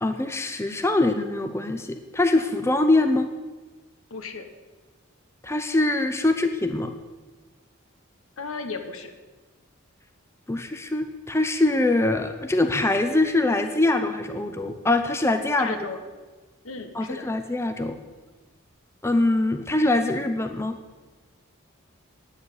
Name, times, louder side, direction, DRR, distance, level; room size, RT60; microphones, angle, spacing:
voice 1, 0.0-3.3 5.4-6.9 10.5-15.8 16.9-18.0 19.0-20.8, left 2 dB, 10° left, 7 dB, 0.6 m, -23 dB
voice 2, 4.1-4.5 8.4-9.1 15.6-16.0 16.6-17.3, left 4 dB, 75° left, 7 dB, 1.3 m, -34 dB
9.8 x 7.3 x 8.3 m, 1.3 s
head